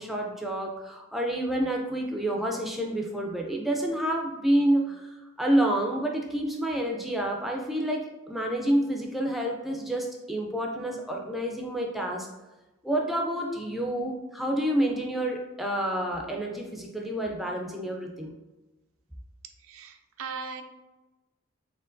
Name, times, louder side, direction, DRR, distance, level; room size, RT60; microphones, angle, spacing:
voice 1, 0.0-5.1 5.4-12.3 12.8-18.3, right 1 dB, ahead, 0 dB, 0.3 m, -28 dB
voice 2, 19.4-20.6, right 5 dB, 80° right, 5 dB, 0.4 m, -39 dB
4.4 x 3.6 x 2.5 m, 1.1 s
head